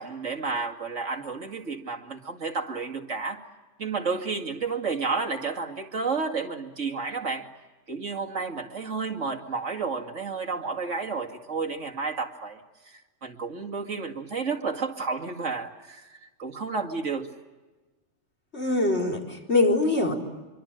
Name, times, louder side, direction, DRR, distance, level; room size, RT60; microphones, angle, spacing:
voice 1, 0.0-3.4 3.8-7.5 7.9-12.6 12.9-17.3, right 4 dB, 85° right, 3 dB, 2.7 m, -31 dB
voice 2, 18.5-20.1, left 2 dB, 65° left, 0 dB, 4.8 m, -23 dB
26.0 x 24.0 x 9.1 m, 1.2 s
omnidirectional pair, 1.2 m